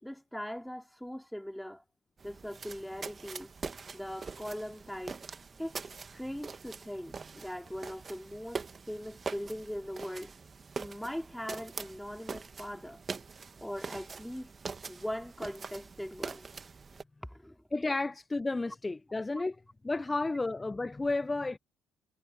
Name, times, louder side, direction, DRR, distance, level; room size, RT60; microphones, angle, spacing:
voice 1, 0.0-1.8 2.2-3.5 3.9-5.3 5.6-5.8 6.1-10.3 10.8-13.0 13.6-14.5 14.9-16.4 17.2-17.6, equal, 5° left, 3.8 m, -40 dB
sound 1, 2.2-17.0, right 5 dB, 35° right, 2.2 m, -43 dB
voice 2, 17.7-19.6 19.8-21.6, left 3 dB, 20° left, 1.0 m, -32 dB
figure-of-eight pair, 45°, 0 cm